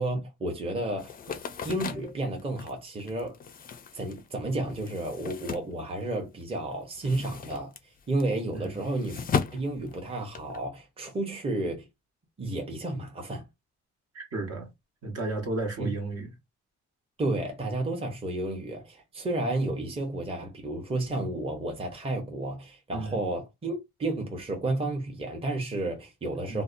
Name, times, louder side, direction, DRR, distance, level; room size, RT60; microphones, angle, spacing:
voice 1, 0.0-1.4 1.6-3.4 3.9-11.9 12.4-13.5 15.8-15.9 17.2-26.6, right 2 dB, 20° right, 0.8 m, -32 dB
sound 1, 1.0-6.4 6.7-10.6, left 6 dB, 30° left, 0.4 m, -36 dB
voice 2, 14.1-14.7 15.0-16.3 22.9-23.2 26.5-26.6, right 2 dB, 55° right, 1.1 m, -33 dB
2.6 x 2.1 x 2.5 m
cardioid pair, 90°, 30 cm